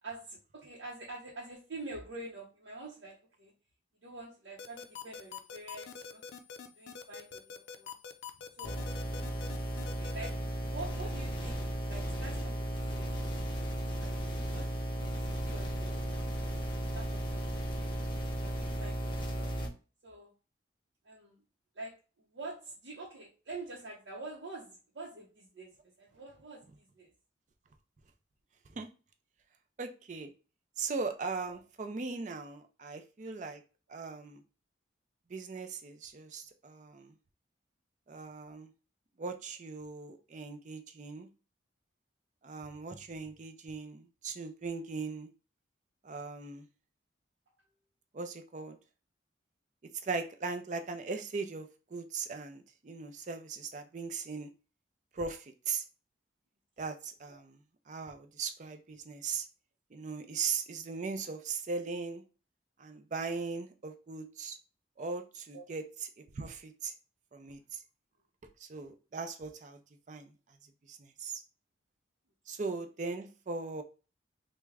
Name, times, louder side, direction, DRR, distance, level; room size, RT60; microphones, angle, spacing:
voice 1, 0.0-3.5 4.0-6.2 6.8-7.9 8.6-8.9 9.9-13.2 13.9-16.5 16.9-19.5 20.0-20.3 21.0-21.4 21.7-22.0 22.3-27.1 31.5-31.6 57.3-57.4 65.5-65.7 73.1-73.2, right 2 dB, 75° right, -4 dB, 0.7 m, -47 dB
sound 1, 4.6-10.3, left 7 dB, 70° left, 0.4 m, -44 dB
sound 2, 8.6-19.7, right 1 dB, 25° left, 0.6 m, -35 dB
voice 2, 29.8-30.3 30.8-33.6 33.9-34.4 35.3-37.1 38.1-38.7 39.2-41.3 42.4-45.3 46.0-46.6 48.1-48.8 50.0-54.5 55.1-55.8 56.8-57.6 57.9-59.5 59.9-62.2 62.8-64.6 65.0-65.8 66.3-66.9 67.3-67.8 68.6-69.8 70.1-70.3 70.9-71.4 72.5-73.8, right 4 dB, 40° right, 7 dB, 0.4 m, -39 dB
3.4 x 2.1 x 3.3 m, 0.34 s
head